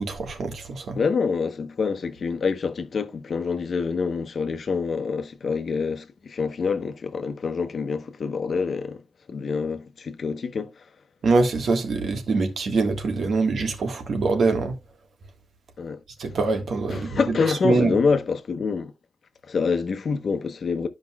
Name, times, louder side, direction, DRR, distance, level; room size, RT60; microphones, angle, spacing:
voice 1, 0.0-1.0 11.2-14.7 16.2-17.2 17.6-17.9, right 3 dB, 75° right, 1.5 m, -24 dB
voice 2, 0.9-9.0 9.3-10.7 15.8-16.0 16.9-18.9 19.4-20.9, left 5 dB, 60° left, 0.9 m, -26 dB
13.0 x 5.2 x 2.3 m
wide cardioid pair, 120°, 0 cm